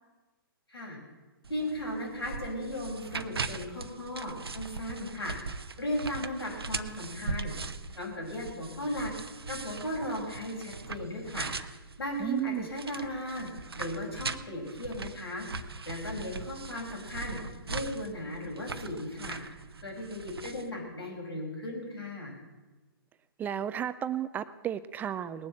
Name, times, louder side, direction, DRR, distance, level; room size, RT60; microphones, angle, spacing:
sound 1, 1.4-20.7, right 4 dB, 90° right, 0.8 m, -40 dB
voice 1, 1.5-5.3 5.8-7.5 8.0-9.1 9.5-11.5 12.0-13.5 13.7-17.4 17.6-19.4 19.8-22.3, left 1 dB, 85° left, 0 dB, 5.4 m, -36 dB
voice 2, 12.2-12.7 23.4-25.5, right 10 dB, 15° right, 13 dB, 0.4 m, -33 dB
19.0 x 7.5 x 7.4 m, 1.2 s
hypercardioid pair, 130°, 13 cm